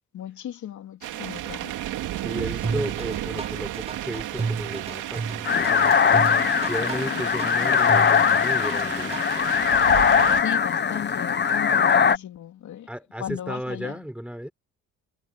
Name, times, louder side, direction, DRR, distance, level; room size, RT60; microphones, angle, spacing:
voice 1, 0.1-1.7 10.4-12.9 13.2-14.0, left 11 dB, 70° left, 3.0 m, -35 dB
sound 1, 1.0-10.4, right 13 dB, 90° right, 2.6 m, -33 dB
voice 2, 2.2-6.3 6.6-9.2 12.9-14.5, equal, 5° right, 4.2 m, -34 dB
sound 2, 2.6-9.4, right 4 dB, 20° right, 0.7 m, -32 dB
sound 3, 5.4-12.2, left 7 dB, 35° left, 1.2 m, -21 dB
cardioid pair, 90°, 30 cm